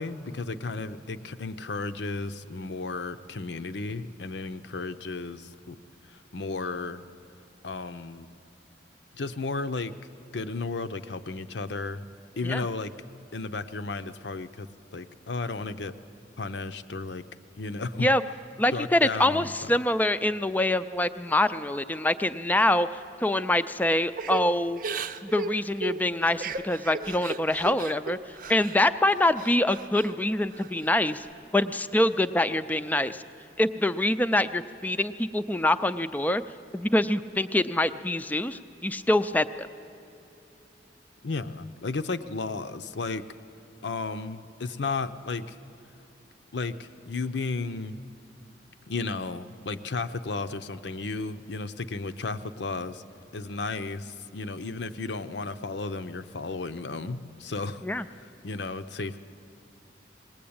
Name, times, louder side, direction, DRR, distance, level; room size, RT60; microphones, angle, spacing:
voice 1, 0.0-5.8 6.1-7.0 7.6-8.3 9.1-9.9 10.3-12.0 12.4-12.9 13.3-15.9 16.4-17.2 17.5-18.1 18.7-19.8 41.2-43.2 43.8-45.6 46.5-48.0 48.9-53.0 53.3-59.2, left 3 dB, 75° left, 11 dB, 0.7 m, -34 dB
voice 2, 18.6-22.9 23.2-24.8 25.2-28.2 28.5-31.3 31.5-33.2 33.6-36.4 36.7-39.5 57.8-58.1, left 1 dB, 10° left, 12 dB, 0.4 m, -25 dB
Crying sobbing / Breathing, 24.2-28.8 29.2-30.1 30.5-31.3, right 4 dB, 50° right, 0.6 m, -36 dB
20.0 x 18.5 x 8.7 m, 2.8 s
head